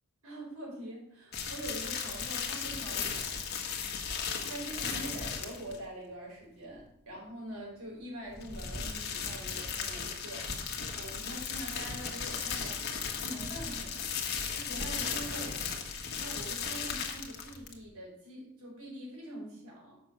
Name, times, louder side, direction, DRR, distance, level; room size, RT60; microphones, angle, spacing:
voice 1, 0.2-3.9 4.4-10.5 10.7-14.1 14.5-15.6 16.1-20.0, right 1 dB, 85° right, -3 dB, 4.2 m, -44 dB
sound 1, 1.3-5.8 8.3-17.8, left 6 dB, 50° left, 1.3 m, -36 dB
6.2 x 5.9 x 7.2 m, 0.75 s
head